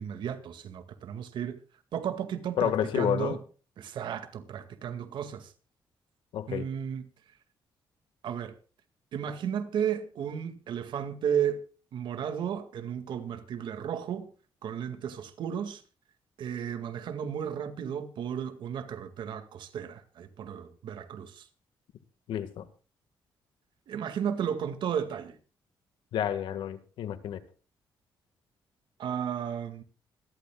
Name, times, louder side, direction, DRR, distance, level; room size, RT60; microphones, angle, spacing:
voice 1, 0.0-1.6 1.9-3.4 3.8-5.5 6.5-7.0 8.2-8.5 9.1-11.6 11.9-14.3 14.6-15.8 16.4-21.5 23.9-25.4 29.0-29.8, right 8 dB, 75° right, 2.1 m, -33 dB
voice 2, 2.6-3.3 6.3-6.7 22.3-22.6 26.1-27.4, left 10 dB, 85° left, 1.7 m, -30 dB
26.0 x 13.0 x 2.4 m
cardioid pair, 100°, 8 cm